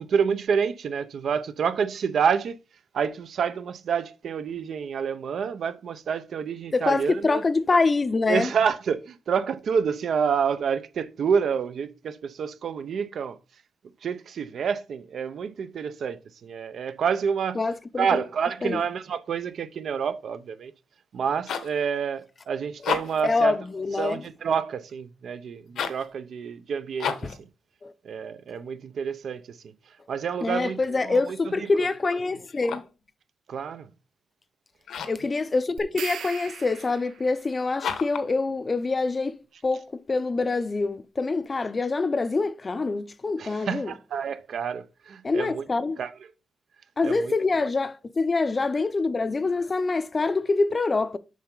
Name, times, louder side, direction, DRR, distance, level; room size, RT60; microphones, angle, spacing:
voice 1, 0.0-2.6 2.9-7.4 8.3-13.4 14.0-17.6 18.0-20.7 21.1-23.6 24.0-27.3 28.0-29.6 30.1-31.7 33.5-33.9 43.4-45.6 46.0-46.1 47.0-47.3 47.6-47.7, right 6 dB, 60° right, 0.6 m, -28 dB
voice 2, 6.7-8.5 17.6-18.2 18.6-18.8 23.2-24.2 27.2-27.3 27.8-27.9 30.4-32.8 35.1-39.4 39.6-43.9 45.2-46.0 47.0-51.2, left 3 dB, 25° left, 0.5 m, -25 dB
sound 1, 21.2-21.8 22.7-23.3 25.7-26.1 27.0-27.4 32.4-33.0 34.8-35.3 37.8-38.3, left 7 dB, 80° left, 1.1 m, -32 dB
sound 2, 35.8-37.4, right 8 dB, 90° right, 0.9 m, -38 dB
7.4 x 5.5 x 3.8 m
wide cardioid pair, 140°, 0 cm